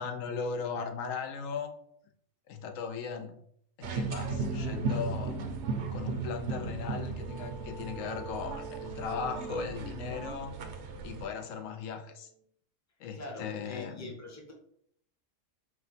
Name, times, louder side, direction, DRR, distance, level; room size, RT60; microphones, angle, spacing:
voice 1, 0.0-1.7 2.5-3.4 3.8-5.4 5.9-10.5 11.0-12.3 13.0-14.1, left 5 dB, 85° left, 6 dB, 1.0 m, -37 dB
sound 1, 3.8-11.3, right 3 dB, 65° right, 0.8 m, -36 dB
sound 2, 6.6-12.1, right 6 dB, 40° right, 0.4 m, -46 dB
voice 2, 13.1-14.5, left 2 dB, 15° left, 0 dB, 0.7 m, -44 dB
4.3 x 2.2 x 4.0 m, 0.67 s
omnidirectional pair, 1.3 m